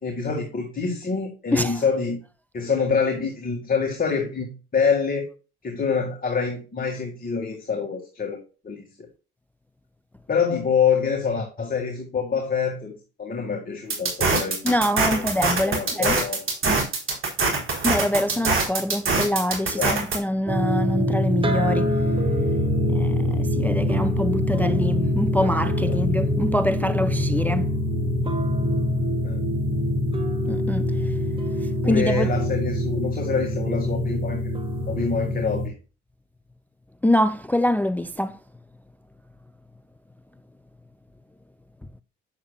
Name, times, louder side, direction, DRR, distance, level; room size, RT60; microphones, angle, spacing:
voice 1, 0.0-2.2 2.5-5.3 5.6-8.4 8.6-8.9 10.3-12.9 13.2-14.6 15.0-15.3 15.6-16.4 19.6-20.0 25.9-26.0 29.2-29.4 31.8-34.4 34.9-35.7, left 5 dB, 30° left, 2.1 m, -26 dB
voice 2, 1.5-1.8 14.6-16.2 16.6-16.8 17.8-21.9 22.9-27.7 30.5-30.8 31.9-32.3 37.0-38.4, left 1 dB, 5° left, 0.4 m, -25 dB
sound 1, 13.9-20.2, right 4 dB, 45° right, 3.9 m, -23 dB
sound 2, 20.5-35.7, left 1 dB, 15° right, 1.7 m, -24 dB
8.7 x 7.2 x 2.3 m
supercardioid pair, 70°, 30 cm